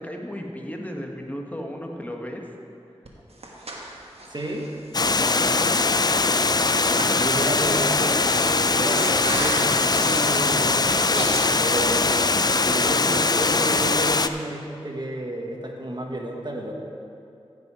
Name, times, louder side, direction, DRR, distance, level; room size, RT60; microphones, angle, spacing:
voice 1, 0.0-2.5 5.2-6.1 7.3-7.6, equal, 15° left, 1 dB, 1.3 m, -35 dB
Breathing, 3.1-11.6, right 1 dB, 65° right, 1.4 m, -36 dB
voice 2, 4.3-4.7 5.2-5.6 7.1-12.3 12.6-16.7, right 1 dB, 45° right, 1 dB, 1.4 m, -31 dB
Water, 4.9-14.3, left 3 dB, 40° left, 0.4 m, -21 dB
15.0 x 5.5 x 4.9 m, 2.6 s
cardioid pair, 45°, 11 cm